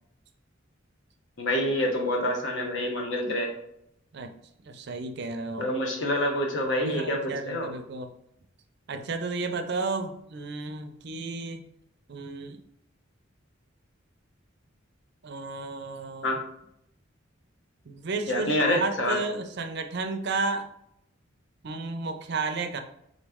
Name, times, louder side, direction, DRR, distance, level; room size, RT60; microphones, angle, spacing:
voice 1, 1.4-3.5 5.6-7.7 16.2-16.4 18.3-19.2, left 1 dB, 65° left, 1 dB, 1.0 m, -27 dB
voice 2, 4.6-5.7 6.8-8.1 8.9-11.6 12.1-12.6 15.2-16.3 17.9-20.7 21.6-22.8, right 3 dB, 55° right, 6 dB, 0.5 m, -32 dB
3.8 x 3.1 x 3.5 m, 0.75 s
head